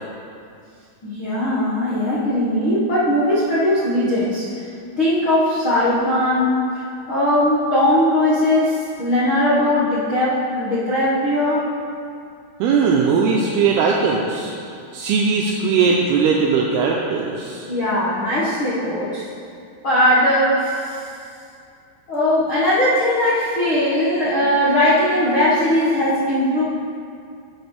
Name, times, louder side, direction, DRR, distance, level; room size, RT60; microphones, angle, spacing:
voice 1, 1.0-4.4 5.0-6.8 7.1-11.6 17.7-19.2 19.8-21.1 22.1-26.6, left 1 dB, 65° left, -10 dB, 1.2 m, -19 dB
voice 2, 12.6-14.5 14.9-17.7, right 5 dB, 80° right, -1 dB, 2.4 m, -19 dB
12.5 x 8.0 x 3.4 m, 2.4 s
omnidirectional pair, 5.0 m